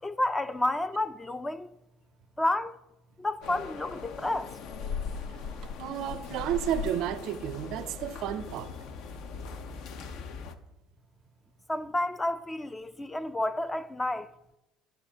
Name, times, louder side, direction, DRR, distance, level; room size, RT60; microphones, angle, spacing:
voice 1, 0.0-1.8 2.4-2.7 3.2-4.6 11.7-14.3, left 1 dB, 15° left, 0.3 m, -30 dB
sound 1, 3.4-10.5, left 5 dB, 60° left, 0.6 m, -39 dB
voice 2, 5.8-8.7, right 11 dB, 65° right, 0.4 m, -32 dB
10.5 x 6.5 x 2.7 m
hypercardioid pair, 70°, 0 cm